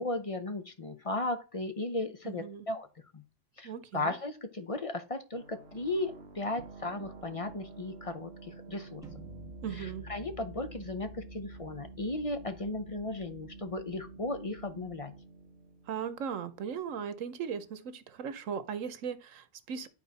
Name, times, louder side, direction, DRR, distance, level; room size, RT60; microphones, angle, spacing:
voice 1, 0.0-2.9 3.1-3.2 3.6-9.0 9.7-15.1, left 2 dB, 35° left, 0.7 m, -36 dB
voice 2, 2.2-2.7 3.6-4.1 9.6-10.1 15.9-19.9, right 7 dB, 85° right, 1.2 m, -38 dB
sound 1, 5.3-16.8, right 4 dB, 60° right, 1.3 m, -50 dB
sound 2, 9.0-15.0, equal, 5° right, 1.7 m, -51 dB
11.0 x 4.4 x 4.1 m
omnidirectional pair, 1.3 m